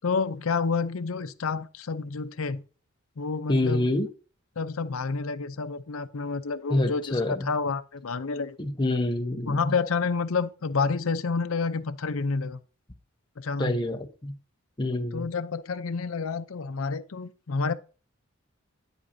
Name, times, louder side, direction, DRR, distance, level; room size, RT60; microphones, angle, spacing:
voice 1, 0.0-2.6 3.2-3.9 4.6-8.6 9.5-12.6 13.4-13.8 15.1-17.7, left 4 dB, 75° left, 0.6 m, -29 dB
voice 2, 3.5-4.1 6.7-7.5 8.6-9.7 13.6-14.3 14.8-15.3, left 1 dB, 20° left, 0.9 m, -26 dB
10.0 x 8.1 x 2.7 m
head